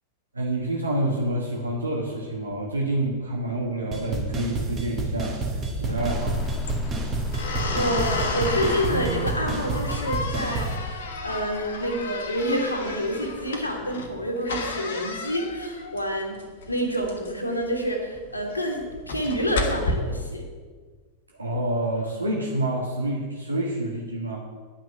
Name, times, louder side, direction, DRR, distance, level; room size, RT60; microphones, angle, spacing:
voice 1, 0.3-5.4 5.8-6.5 21.4-24.4, right 1 dB, 80° right, -1 dB, 1.4 m, -28 dB
sound 1, 3.9-10.8, right 3 dB, 30° right, 1.7 m, -29 dB
sound 2, 5.6-19.9, left 2 dB, 60° left, 1.4 m, -33 dB
sound 3, 6.0-13.5, left 4 dB, 15° left, 1.3 m, -38 dB
voice 2, 7.7-16.4 16.7-20.5, equal, 85° left, 1 dB, 1.9 m, -28 dB
9.9 x 6.2 x 8.3 m, 1.5 s
figure-of-eight pair, 90°, 0 cm